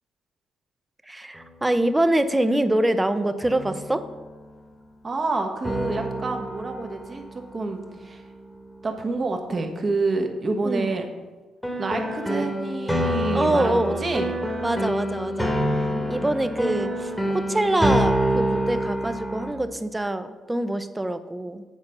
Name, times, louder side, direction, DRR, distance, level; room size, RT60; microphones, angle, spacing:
voice 1, 1.1-4.1 10.6-10.9 13.3-14.1 14.6-15.6 16.1-21.6, right 1 dB, 10° right, 11 dB, 0.6 m, -25 dB
sound 1, 1.4-1.5 3.4-4.4 5.6-8.9 11.6-19.5, equal, 5° left, 1.2 m, -27 dB
voice 2, 5.0-7.2 7.5-8.2 8.8-11.1 11.8-14.4 15.9-16.3, right 3 dB, 35° right, 4 dB, 1.1 m, -28 dB
8.2 x 4.1 x 6.6 m, 1.2 s
cardioid pair, 90°, 0 cm